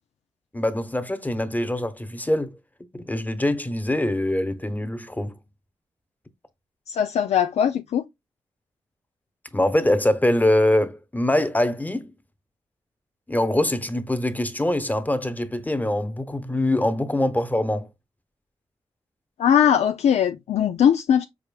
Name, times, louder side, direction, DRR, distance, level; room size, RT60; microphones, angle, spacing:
voice 1, 0.5-2.6 2.9-5.4 9.5-12.1 13.3-17.9, left 1 dB, 15° left, 1.0 m, -23 dB
voice 2, 6.9-8.0 19.4-21.2, left 9 dB, 70° left, 0.4 m, -20 dB
5.0 x 4.4 x 2.3 m
supercardioid pair, 40°, 11 cm